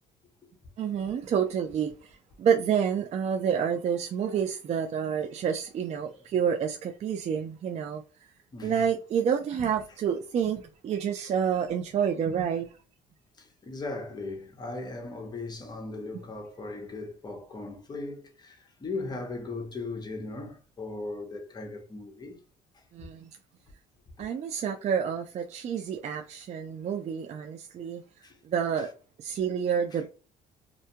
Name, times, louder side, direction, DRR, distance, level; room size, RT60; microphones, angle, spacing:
voice 1, 0.8-2.1 2.4-8.0 8.6-12.7 22.9-23.3 24.2-28.0 28.4-28.9 29.2-30.1, right 7 dB, 40° right, 0.4 m, -28 dB
voice 2, 8.5-8.8 13.4-22.4 22.7-22.8 28.2-28.4, left 3 dB, 25° left, 0.7 m, -38 dB
2.5 x 2.1 x 2.7 m
cardioid pair, 110°, 17 cm